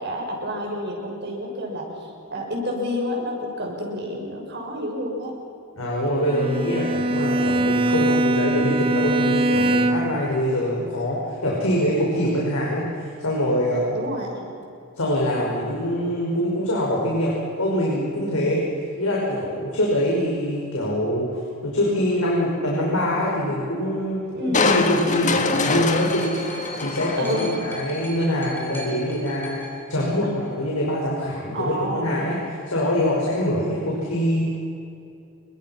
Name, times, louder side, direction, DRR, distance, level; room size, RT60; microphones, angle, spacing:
voice 1, 0.0-1.9 2.3-5.3 13.9-14.5 24.3-24.8 27.2-27.7 31.5-32.3, equal, 55° right, 1 dB, 6.3 m, -29 dB
voice 2, 5.8-13.8 15.0-18.6 18.9-26.4 26.8-29.6 29.9-32.4 32.7-34.4, equal, 90° left, -4 dB, 5.8 m, -24 dB
Bowed string instrument, 6.2-10.3, right 2 dB, 25° right, 1.3 m, -22 dB
Crushing, 24.5-27.9 28.4-28.5, left 3 dB, 35° left, 1.7 m, -24 dB
sound 1, 25.3-30.7 31.6-31.7, equal, 10° left, 3.9 m, -41 dB
28.5 x 24.0 x 6.0 m, 2.6 s
head